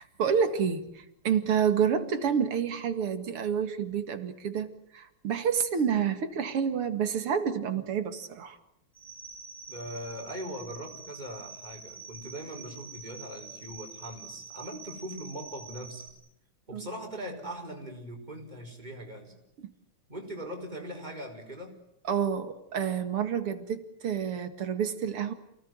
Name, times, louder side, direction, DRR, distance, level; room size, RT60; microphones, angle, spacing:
voice 1, 0.0-8.6 16.7-16.9 19.6-19.7 22.0-25.3, right 7 dB, 85° right, 8 dB, 2.9 m, -29 dB
sound 1, 9.0-16.1, right 5 dB, 10° left, 6.7 m, -46 dB
voice 2, 9.7-16.1 16.7-19.4 20.1-21.8, equal, 20° right, 3 dB, 5.1 m, -40 dB
28.5 x 19.0 x 9.4 m, 0.82 s
omnidirectional pair, 2.4 m